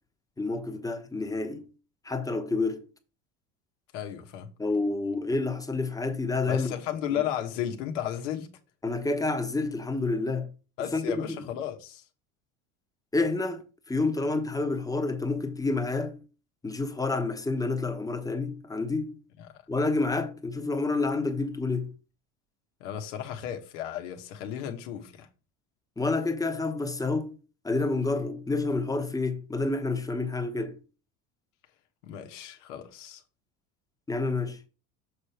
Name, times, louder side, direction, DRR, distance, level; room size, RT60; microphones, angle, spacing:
voice 1, 0.4-1.7 2.0-2.9 4.6-6.8 7.1-7.2 8.8-10.5 10.9-11.4 13.1-16.2 16.6-19.2 19.7-21.9 26.0-27.4 27.6-30.8 34.1-34.6, left 3 dB, 10° left, 1.0 m, -29 dB
voice 2, 3.9-4.5 6.4-8.5 10.8-12.0 22.8-25.3 32.0-33.2, left 10 dB, 85° left, 1.2 m, -34 dB
6.9 x 3.4 x 5.7 m
supercardioid pair, 105°, 36 cm